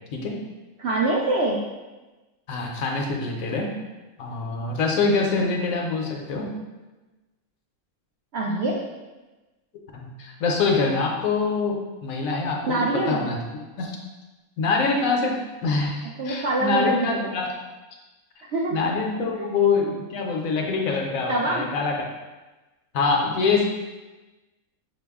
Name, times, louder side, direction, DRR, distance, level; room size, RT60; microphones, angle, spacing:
voice 1, 0.8-1.6 8.3-8.8 12.6-13.2 16.2-17.3 18.5-18.8 19.4-19.5 21.3-21.7, right 2 dB, 65° right, -3 dB, 0.6 m, -24 dB
voice 2, 2.5-3.7 4.2-6.5 9.9-13.4 13.8-14.0 14.6-15.3 15.6-17.6 18.7-21.9 22.9-23.6, left 4 dB, 70° left, 1 dB, 1.0 m, -25 dB
5.9 x 2.0 x 3.4 m, 1.2 s
omnidirectional pair, 1.5 m